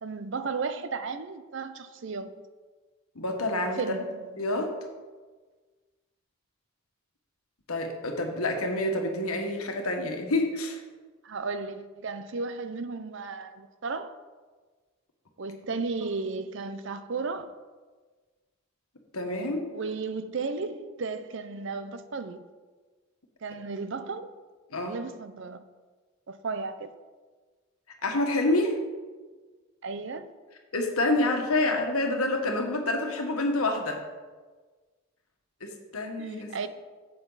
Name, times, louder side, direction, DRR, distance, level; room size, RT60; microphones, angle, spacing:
voice 1, 0.0-2.4 3.8-4.2 11.2-14.1 15.4-17.5 19.7-22.4 23.4-24.3 24.8-25.6 26.3-26.9 29.8-30.3 36.2-36.7, right 4 dB, 55° right, 0.5 m, -34 dB
voice 2, 3.1-3.8 4.4-4.7 7.7-10.8 19.1-19.7 24.7-24.9 28.0-28.8 30.7-34.0 35.6-36.5, left 2 dB, 80° left, 1.5 m, -27 dB
10.5 x 7.7 x 4.0 m
head